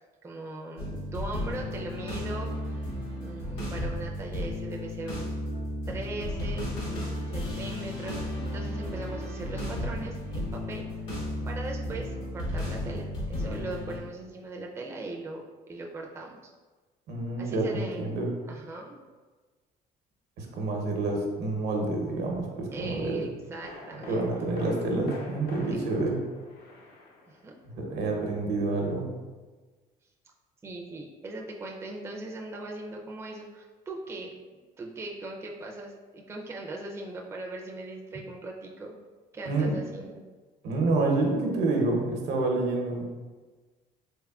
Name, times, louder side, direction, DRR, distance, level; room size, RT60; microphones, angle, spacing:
voice 1, 0.2-2.8 3.2-5.4 5.9-6.7 7.3-8.2 8.5-10.9 11.5-16.4 17.4-18.0 18.5-19.0 22.7-24.3 25.7-25.8 27.3-27.6 30.6-34.3 34.8-39.0 39.3-40.2, right 2 dB, 15° right, 0 dB, 0.4 m, -39 dB
sound 1, 0.8-14.0, left 1 dB, 90° left, 1.5 m, -34 dB
voice 2, 17.1-18.3 20.4-23.2 24.1-26.2 27.7-29.1 39.5-39.8 40.6-43.0, right 2 dB, 80° right, 0 dB, 0.8 m, -28 dB
sound 2, 22.7-22.8 23.6-27.7 28.0-28.1, left 2 dB, 70° left, 0.6 m, -45 dB
3.5 x 3.5 x 2.3 m, 1.3 s
cardioid pair, 110°, 17 cm